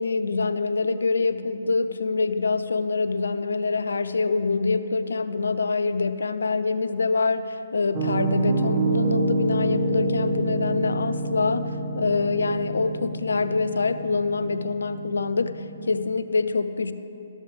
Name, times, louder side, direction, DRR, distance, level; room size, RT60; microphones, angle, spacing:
voice 1, 0.0-16.9, left 4 dB, 75° left, 12 dB, 0.6 m, -25 dB
Piano, 7.9-15.8, right 2 dB, 30° right, 1.8 m, -27 dB
13.0 x 13.0 x 3.5 m, 2.8 s
figure-of-eight pair, 135°, 0 cm